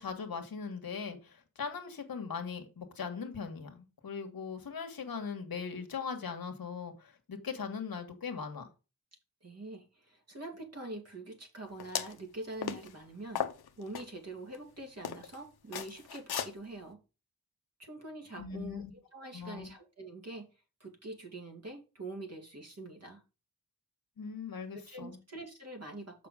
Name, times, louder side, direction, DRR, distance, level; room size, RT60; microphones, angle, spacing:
voice 1, 0.0-8.7 18.4-18.9 19.3-19.7 24.2-25.2, left 5 dB, 70° left, 1.5 m, -40 dB
voice 2, 9.4-13.5 13.8-17.0 17.8-20.5 20.8-23.2 24.7-26.3, right 2 dB, 45° right, 2.5 m, -45 dB
sound 1, 11.8-12.2 12.6-12.9 13.4-14.0 14.5-14.6 15.0-15.4 15.7-16.5, left 9 dB, 90° left, 0.9 m, -36 dB
6.9 x 5.7 x 5.0 m
wide cardioid pair, 90°, 37 cm